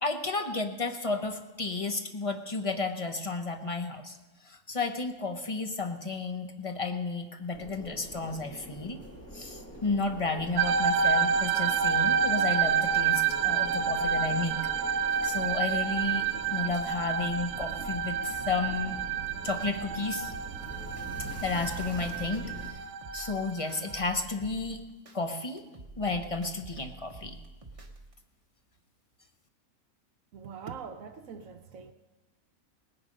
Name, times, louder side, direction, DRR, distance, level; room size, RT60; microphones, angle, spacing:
voice 1, 0.0-4.2 4.5-9.0 9.3-14.6 15.2-18.9 19.4-20.3 21.4-22.8 23.1-24.8 25.1-25.7 26.0-27.4, left 3 dB, 30° left, 0.8 m, -32 dB
sound 1, 7.5-22.7, right 1 dB, 10° left, 1.7 m, -44 dB
sound 2, 10.6-24.0, right 7 dB, 90° right, 1.1 m, -29 dB
sound 3, 17.6-19.7 20.1-22.7 23.0-25.2 25.6-28.1, right 2 dB, 25° right, 1.2 m, -48 dB
voice 2, 30.3-31.9, right 6 dB, 70° right, 1.1 m, -43 dB
18.5 x 10.5 x 5.2 m
omnidirectional pair, 1.5 m